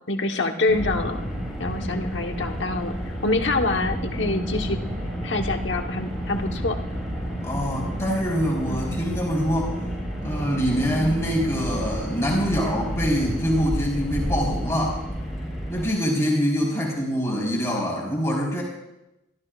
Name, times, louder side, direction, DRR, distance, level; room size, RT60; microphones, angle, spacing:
voice 1, 0.1-1.2 1.6-4.8 5.2-6.8 8.7-8.9, left 2 dB, 70° left, 4 dB, 1.2 m, -26 dB
Car, 0.7-15.9, equal, ahead, 6.3 m, -30 dB
voice 2, 7.4-9.9 10.2-15.0 15.7-18.6, equal, 15° left, -4 dB, 4.2 m, -24 dB
25.5 x 13.5 x 2.5 m, 0.92 s
head